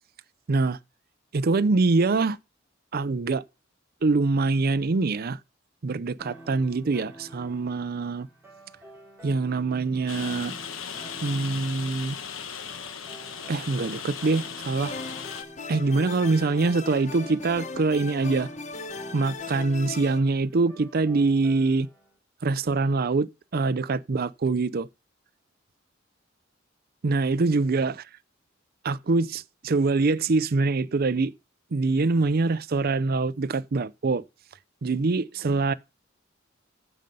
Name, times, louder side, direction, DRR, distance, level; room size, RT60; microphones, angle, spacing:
voice 1, 0.5-0.8 1.3-2.4 2.9-3.4 4.0-5.4 5.8-8.3 9.2-10.6 11.2-12.2 13.5-14.9 15.7-18.5 19.1-21.9 22.4-24.9 27.0-28.1 28.8-31.3 31.7-34.2 34.8-35.7, right 3 dB, 50° right, 0.5 m, -24 dB
sound 1, 6.2-22.1, right 1 dB, 10° right, 3.7 m, -50 dB
Rain, 10.1-15.4, left 7 dB, 85° left, 1.2 m, -37 dB
sound 2, 14.8-20.2, left 4 dB, 35° left, 0.9 m, -38 dB
15.0 x 5.3 x 5.4 m
head